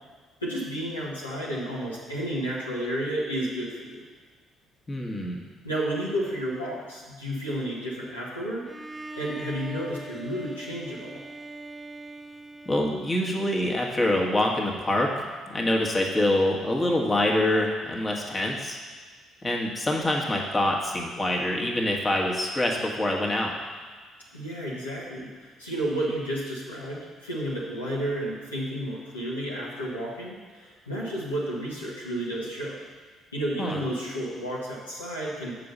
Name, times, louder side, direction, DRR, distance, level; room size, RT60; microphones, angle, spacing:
voice 1, 0.4-4.0 5.6-8.6 9.2-11.2 24.3-32.7 33.3-35.5, right 1 dB, 90° left, -7 dB, 1.6 m, -31 dB
voice 2, 4.9-5.4 12.6-15.1 15.5-18.8 19.4-23.5 33.6-33.8, left 1 dB, 20° left, -1 dB, 1.5 m, -25 dB
Bowed string instrument, 8.7-13.7, right 1 dB, 15° right, 0.6 m, -41 dB
7.6 x 4.8 x 6.7 m, 1.5 s
figure-of-eight pair, 50°, 0 cm